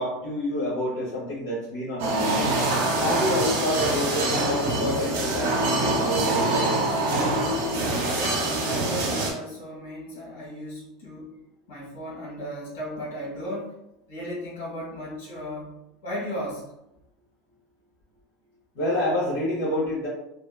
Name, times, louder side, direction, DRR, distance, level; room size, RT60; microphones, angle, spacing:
voice 1, 0.0-2.6 3.0-6.9 18.7-20.1, left 1 dB, 65° left, -7 dB, 0.8 m, -28 dB
sound 1, 2.0-9.3, right 2 dB, 70° right, 0.8 m, -25 dB
voice 2, 8.1-11.3 11.7-13.7 14.1-15.8 16.0-16.6, equal, 85° left, -3 dB, 1.5 m, -35 dB
2.9 x 2.2 x 2.3 m, 0.87 s
supercardioid pair, 175°, 0 cm